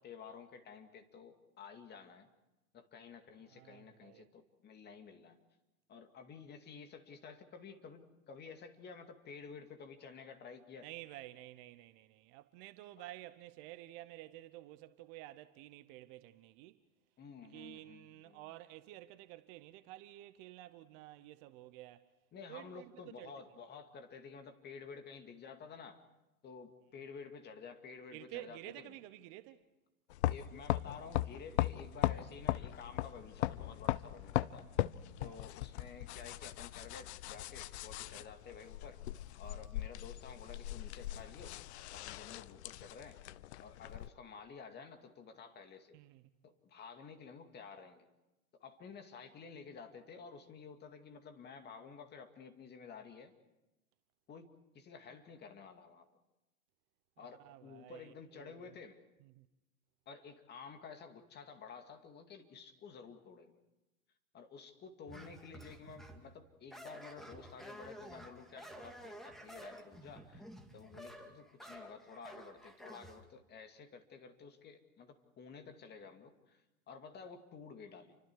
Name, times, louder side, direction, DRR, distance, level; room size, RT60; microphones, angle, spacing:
voice 1, 0.0-2.3 2.7-5.4 5.9-10.9 13.0-13.1 17.2-18.5 22.3-26.0 26.4-28.9 30.3-34.7 35.2-39.0 39.4-41.6 41.9-46.0 46.4-48.1 48.6-53.3 54.3-56.1 57.2-59.0 60.1-63.6 64.3-70.4 70.7-78.2, left 5 dB, 25° left, 2.3 m, -52 dB
voice 2, 3.5-4.3 10.8-16.8 17.4-22.1 22.5-23.3 28.1-29.6 35.2-35.4 45.9-46.2 57.2-58.8 59.2-59.5, right 16 dB, 35° right, 0.9 m, -52 dB
sound 1, 30.1-44.1, left 15 dB, 50° left, 0.7 m, -39 dB
sound 2, 65.1-66.3 66.7-73.2, right 1 dB, ahead, 2.3 m, -52 dB
29.5 x 25.0 x 4.8 m
hypercardioid pair, 115°, 43 cm